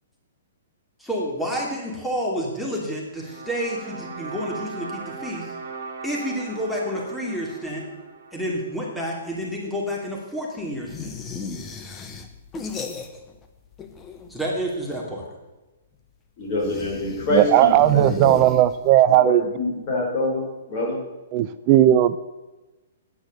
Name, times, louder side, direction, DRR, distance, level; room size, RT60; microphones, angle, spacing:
voice 1, 1.0-5.5 6.0-7.9 8.3-11.2 14.3-15.3, equal, 5° left, -3 dB, 2.9 m, -29 dB
sound 1, 3.2-9.4, right 4 dB, 65° right, 1.9 m, -39 dB
sound 2, 10.9-13.5 13.7-14.5 16.5-19.1, left 4 dB, 20° left, 1.2 m, -36 dB
voice 2, 16.4-18.4 19.3-21.0, left 2 dB, 40° left, -2 dB, 5.4 m, -26 dB
voice 3, 17.3-19.4 21.3-22.2, right 12 dB, 40° right, 14 dB, 0.5 m, -16 dB
10.0 x 9.6 x 6.8 m, 1.1 s
figure-of-eight pair, 120°, 0 cm